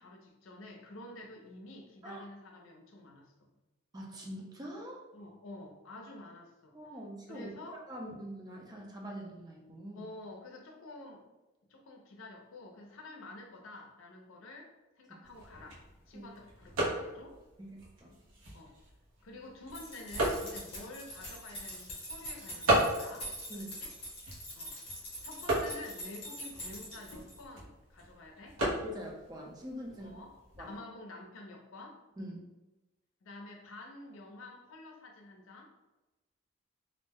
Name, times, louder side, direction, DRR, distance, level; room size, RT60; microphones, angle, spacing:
voice 1, 0.0-3.3 5.1-7.0 7.3-7.8 9.9-11.3 11.7-15.8 16.1-17.4 18.5-18.8 19.2-24.0 24.6-24.8 25.2-28.6 30.0-32.0 33.2-35.7, left 2 dB, 85° left, 2 dB, 0.5 m, -49 dB
voice 2, 3.9-5.0 6.7-7.5 7.9-10.0 16.1-16.2 17.6-18.1 23.5-23.7 28.8-30.2 30.6-30.8 32.2-32.4, equal, 20° right, -1 dB, 0.4 m, -44 dB
sound 1, 15.2-30.8, right 1 dB, 90° right, 0.8 m, -37 dB
sound 2, 19.7-27.5, equal, 30° left, 0.8 m, -44 dB
2.5 x 2.1 x 3.4 m, 1.1 s
head